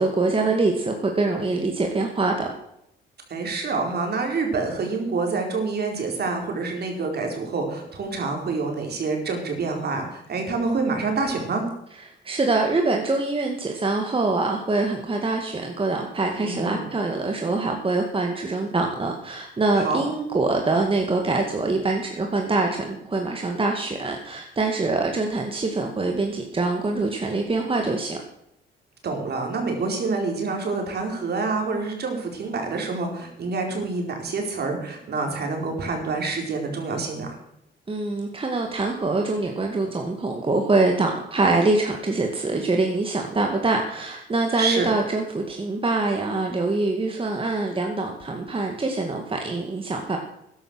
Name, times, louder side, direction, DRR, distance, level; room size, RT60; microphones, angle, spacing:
voice 1, 0.0-2.5 12.2-28.2 37.9-50.2, right 3 dB, 25° right, 2 dB, 2.1 m, -24 dB
voice 2, 3.3-11.7 16.4-16.9 19.8-20.0 29.0-37.4 44.6-44.9, right 4 dB, 55° right, 3 dB, 4.5 m, -27 dB
13.5 x 11.0 x 6.3 m, 0.77 s
cardioid pair, 90°, 20 cm